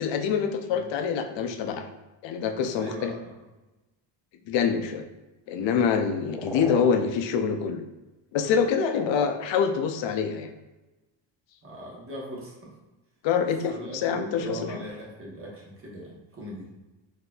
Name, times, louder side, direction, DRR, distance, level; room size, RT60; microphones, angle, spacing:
voice 1, 0.0-1.9 2.2-3.1 4.5-5.1 5.5-7.8 8.3-10.5 13.2-14.7, left 6 dB, 70° left, 7 dB, 0.5 m, -25 dB
voice 2, 2.8-3.4 8.4-8.5 11.6-12.7 13.7-16.7, equal, 30° right, -3 dB, 1.0 m, -40 dB
sound 1, 6.1-6.9 8.4-9.4, left 1 dB, ahead, 0.7 m, -36 dB
3.9 x 2.8 x 2.3 m, 1.1 s
cardioid pair, 125°, 47 cm